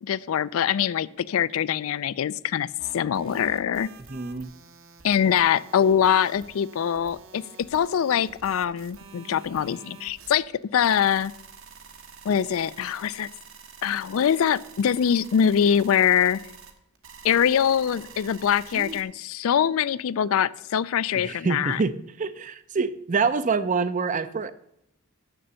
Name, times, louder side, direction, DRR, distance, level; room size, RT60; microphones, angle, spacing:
voice 1, 0.0-2.7 2.9-3.9 5.0-11.3 12.3-13.3 13.8-16.4 17.2-21.8, left 8 dB, 65° left, 18 dB, 0.3 m, -23 dB
sound 1, 2.8-19.0, right 5 dB, 60° right, 1.2 m, -47 dB
voice 2, 4.1-4.5 18.7-19.0 21.1-24.5, right 4 dB, 35° right, 14 dB, 0.5 m, -26 dB
6.9 x 6.7 x 7.5 m, 0.79 s
head